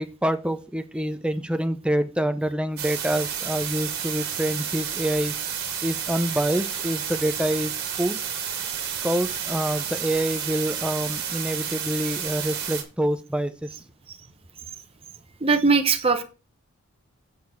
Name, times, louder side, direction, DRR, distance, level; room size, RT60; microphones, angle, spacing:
voice 1, 0.0-5.3 5.8-7.7 8.0-8.2 9.0-13.8, right 1 dB, 5° right, 10 dB, 0.5 m, -26 dB
sound 1, 2.8-12.8, right 8 dB, 45° right, 1.9 m, -31 dB
voice 2, 15.4-16.2, right 4 dB, 25° right, 6 dB, 1.0 m, -20 dB
7.9 x 4.5 x 7.1 m, 0.33 s
head